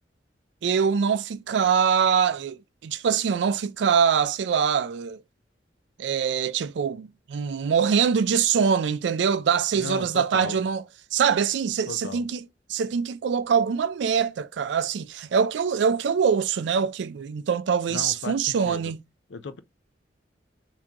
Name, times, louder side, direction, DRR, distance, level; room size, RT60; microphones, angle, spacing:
voice 1, 0.6-5.2 6.0-10.8 11.1-12.4 12.7-19.0, right 6 dB, 70° right, 0.3 m, -24 dB
voice 2, 9.7-10.6 11.9-12.2 17.9-18.9 19.3-19.6, left 4 dB, 75° left, 0.5 m, -36 dB
3.5 x 2.7 x 3.7 m
head